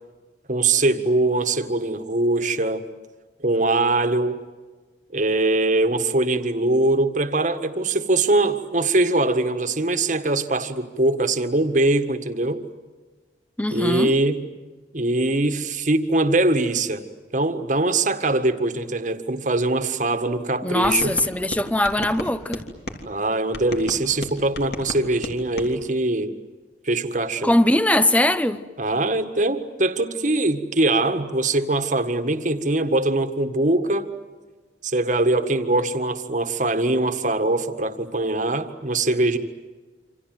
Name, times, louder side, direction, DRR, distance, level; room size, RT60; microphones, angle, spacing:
voice 1, 0.5-2.8 3.4-4.4 5.1-12.6 13.7-14.4 14.9-17.0 17.3-21.1 23.1-26.3 26.8-27.5 28.8-34.1 34.8-39.4, right 2 dB, 45° right, 1.8 m, -22 dB
voice 2, 13.6-14.1 20.6-22.6 27.4-28.6, left 1 dB, 10° left, 0.9 m, -21 dB
sound 1, 20.8-23.0 23.5-25.7, left 1 dB, 60° left, 3.2 m, -34 dB
28.0 x 26.5 x 7.8 m
head